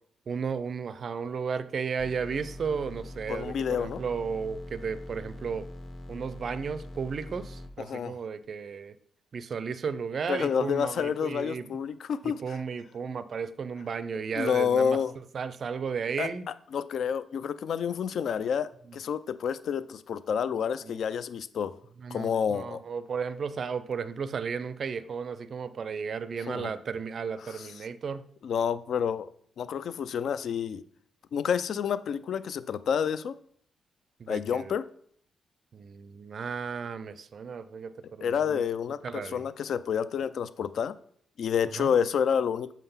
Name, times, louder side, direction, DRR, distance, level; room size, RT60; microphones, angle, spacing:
voice 1, 0.3-5.7 6.1-8.9 9.3-11.7 12.2-15.0 15.3-16.5 18.9-19.0 20.8-20.9 22.0-28.2 34.2-34.8 35.7-38.6 39.0-39.5 41.8-41.9, right 6 dB, 40° right, 14 dB, 0.5 m, -34 dB
sound 1, 2.0-7.7, left 1 dB, 35° left, 0.9 m, -43 dB
voice 2, 3.3-4.0 7.8-8.1 10.3-12.6 14.4-15.1 16.2-16.3 16.7-21.7 22.1-22.8 26.5-26.7 27.5-27.7 28.4-29.3 29.6-30.8 31.3-33.3 34.3-34.9 38.2-40.9 41.4-42.7, left 7 dB, 55° left, 15 dB, 0.4 m, -29 dB
7.2 x 5.7 x 5.5 m, 0.62 s
wide cardioid pair, 175°, 0 cm